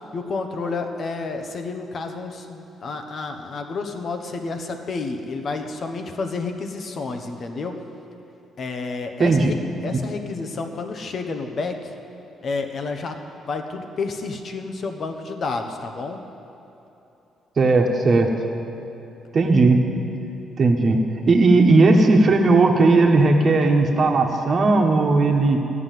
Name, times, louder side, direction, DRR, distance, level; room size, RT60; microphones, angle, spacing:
voice 1, 0.1-7.8 8.6-9.6 9.8-11.9 12.4-16.2, left 3 dB, 50° left, 5 dB, 1.2 m, -30 dB
voice 2, 9.2-9.5 9.9-10.0 17.6-18.3 19.3-19.8 20.6-25.6, right 3 dB, 45° right, 2 dB, 1.4 m, -17 dB
14.0 x 6.2 x 9.3 m, 3.0 s
cardioid pair, 90°, 0 cm